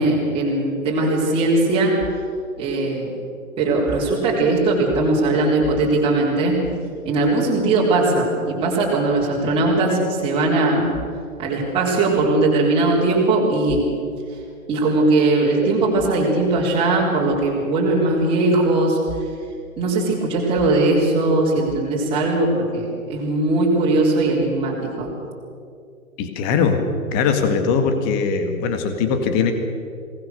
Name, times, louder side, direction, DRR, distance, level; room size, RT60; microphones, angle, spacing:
voice 1, 0.0-2.0 2.6-3.1 3.6-6.6 7.0-10.9 11.4-13.8 14.7-19.0 19.8-25.1, right 2 dB, 10° right, -6 dB, 3.8 m, -19 dB
voice 2, 26.2-26.8 27.1-29.5, left 5 dB, 20° left, 6 dB, 1.9 m, -20 dB
22.5 x 18.5 x 6.8 m, 2.4 s
hypercardioid pair, 145°, 43 cm